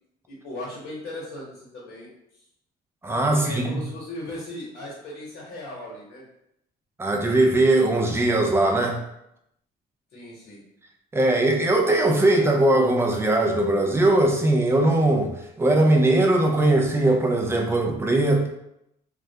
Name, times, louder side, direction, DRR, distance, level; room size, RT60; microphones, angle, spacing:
voice 1, 0.3-2.4 3.3-6.2 10.1-10.6, left 1 dB, 70° left, -5 dB, 0.9 m, -38 dB
voice 2, 3.0-3.8 7.0-9.0 11.1-15.3 15.6-18.5, right 2 dB, 15° right, 2 dB, 0.4 m, -20 dB
2.2 x 2.1 x 2.7 m, 0.79 s
cardioid pair, 110°, 17 cm